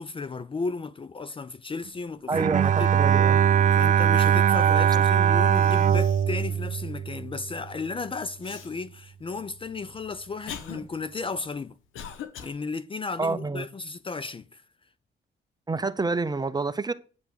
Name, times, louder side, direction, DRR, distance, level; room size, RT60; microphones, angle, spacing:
voice 1, 0.0-2.5 2.8-3.0 3.7-11.8 12.4-14.6, left 4 dB, 25° left, 0.5 m, -34 dB
voice 2, 2.3-3.4 13.2-13.7 15.7-16.9, right 3 dB, 20° right, 0.8 m, -28 dB
Bowed string instrument, 2.3-7.6, right 8 dB, 40° right, 0.4 m, -21 dB
Cough, 5.0-5.1 5.5-6.4 6.8-6.9 8.4-8.7 9.5-12.5, left 8 dB, 85° left, 1.3 m, -42 dB
9.5 x 5.8 x 6.5 m
cardioid pair, 90°, 20 cm